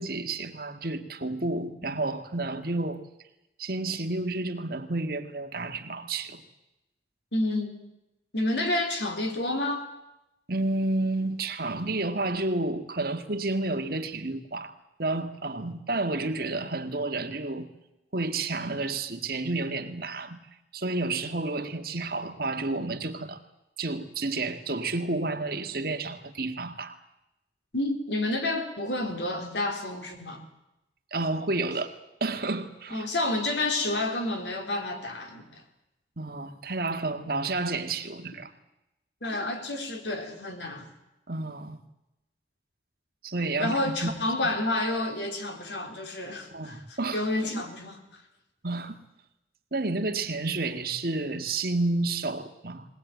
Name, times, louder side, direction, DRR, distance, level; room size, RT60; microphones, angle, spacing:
voice 1, 0.0-3.0 3.6-6.4 10.5-14.7 15.0-17.7 18.1-20.4 20.7-23.4 23.8-26.9 31.1-31.9 32.2-33.0 36.2-38.5 41.3-41.8 43.2-44.1 46.5-47.2 48.6-49.0 49.7-52.9, right 2 dB, 55° right, 7 dB, 1.8 m, -30 dB
voice 2, 7.3-7.8 8.3-9.9 27.7-30.5 32.9-35.6 39.2-40.9 43.6-48.2, left 2 dB, 80° left, 4 dB, 3.9 m, -30 dB
20.5 x 19.5 x 9.3 m, 0.92 s
head